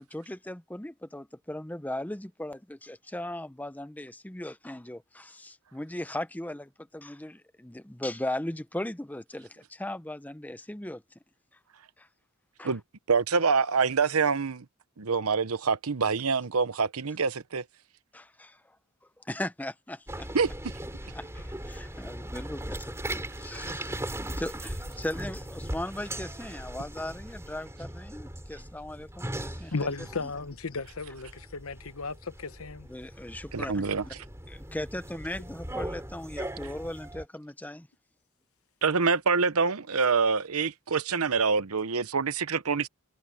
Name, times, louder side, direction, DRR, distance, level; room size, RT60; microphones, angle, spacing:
voice 1, 0.0-11.0 12.0-12.1 12.6-12.7 18.1-18.8 19.2-20.3 21.0-29.9 30.2-30.3 32.9-34.1 34.5-37.9, left 1 dB, 5° left, 0.6 m, -38 dB
voice 2, 13.1-14.7 15.0-17.6 20.3-20.5 33.5-34.0 38.8-42.9, right 5 dB, 80° right, 0.9 m, -26 dB
sound 1, 20.1-37.3, right 1 dB, 10° right, 4.3 m, -39 dB
voice 3, 29.7-32.9, left 3 dB, 70° left, 1.0 m, -35 dB
head